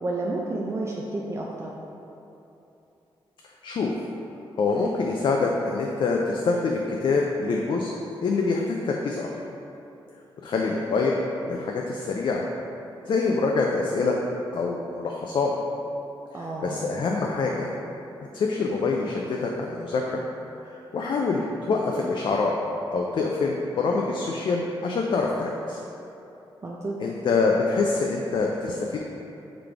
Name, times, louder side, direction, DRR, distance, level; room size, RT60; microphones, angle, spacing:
voice 1, 0.0-1.7 16.3-16.9 26.6-27.0, right 2 dB, 30° right, -3 dB, 0.4 m, -31 dB
voice 2, 4.6-7.9 8.2-9.3 10.4-11.2 11.5-12.4 13.1-14.2 14.5-15.5 16.3-17.7 18.3-20.2 20.7-22.5 22.9-25.8 27.0-29.0, left 4 dB, 55° left, -1 dB, 0.3 m, -25 dB
3.9 x 3.2 x 3.4 m, 2.9 s
cardioid pair, 85°, 10 cm